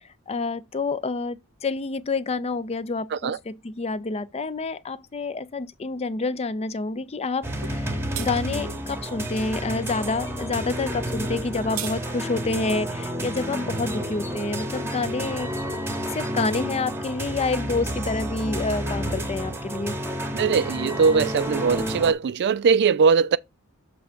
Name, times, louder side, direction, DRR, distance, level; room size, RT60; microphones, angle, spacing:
voice 1, 0.3-15.5 16.1-20.0, left 3 dB, 30° left, 0.4 m, -28 dB
sound 1, 7.4-22.1, equal, 10° right, 1.0 m, -30 dB
sound 2, 7.6-7.8 8.1-8.3 11.3-12.0, right 11 dB, 70° right, 0.7 m, -34 dB
voice 2, 20.3-23.4, right 5 dB, 50° right, 0.3 m, -20 dB
6.8 x 3.4 x 5.1 m
head